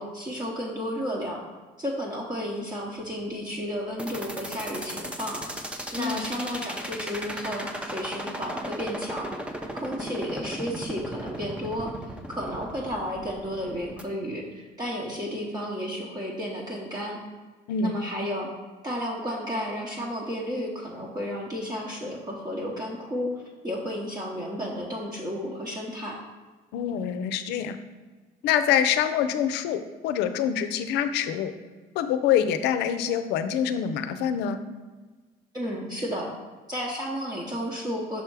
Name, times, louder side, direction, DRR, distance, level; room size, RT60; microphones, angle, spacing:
voice 1, 0.0-1.4 1.8-5.4 5.9-9.3 9.8-17.2 17.8-18.5 18.8-23.3 23.6-26.2 35.5-36.3 36.7-38.2, equal, 25° right, -4 dB, 0.9 m, -32 dB
sound 1, 4.0-14.0, equal, 5° right, 0.5 m, -36 dB
voice 2, 6.0-6.3 17.7-18.0 26.7-27.8 28.4-31.5 31.9-34.6, left 9 dB, 85° left, 10 dB, 0.5 m, -25 dB
6.3 x 3.4 x 4.6 m, 1.3 s
cardioid pair, 110°, 17 cm